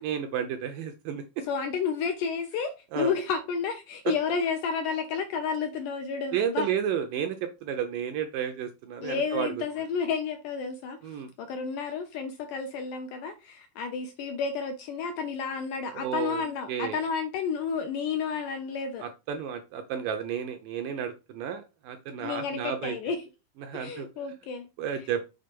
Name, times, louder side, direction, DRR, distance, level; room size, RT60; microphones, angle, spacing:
voice 1, 0.0-1.2 2.9-3.1 4.1-4.2 6.3-9.5 11.0-11.3 15.9-16.4 16.7-17.0 19.0-23.0 23.6-24.1 24.8-25.2, right 8 dB, 80° right, 2.0 m, -32 dB
voice 2, 1.4-6.7 9.0-19.0 22.2-23.2 23.7-24.7 25.0-25.1, left 6 dB, 75° left, 2.0 m, -31 dB
6.7 x 3.7 x 5.2 m
omnidirectional pair, 4.4 m